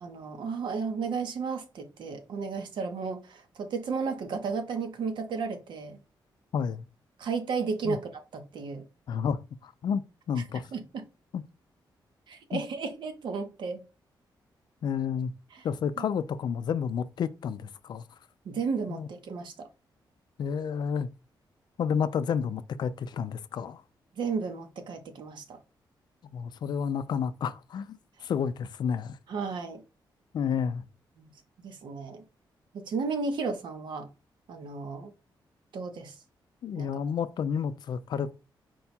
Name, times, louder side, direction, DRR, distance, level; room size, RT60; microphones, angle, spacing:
voice 1, 0.0-6.0 7.2-8.8 10.7-11.0 12.3-13.8 15.5-15.6 16.0-16.1 18.4-19.7 24.2-25.6 29.3-29.8 31.2-31.3 31.6-32.2 32.7-34.1 34.5-35.1 35.7-36.1 36.8-36.9, right 5 dB, 70° right, 0.9 m, -33 dB
voice 2, 6.5-6.9 7.8-8.0 9.1-10.0 10.3-10.7 11.3-11.4 12.5-12.6 14.8-15.3 15.6-18.0 18.9-19.1 20.4-21.1 21.8-23.8 26.2-29.2 30.3-30.8 36.6-38.4, left 7 dB, 60° left, 0.4 m, -30 dB
4.6 x 2.3 x 4.1 m
wide cardioid pair, 155°, 8 cm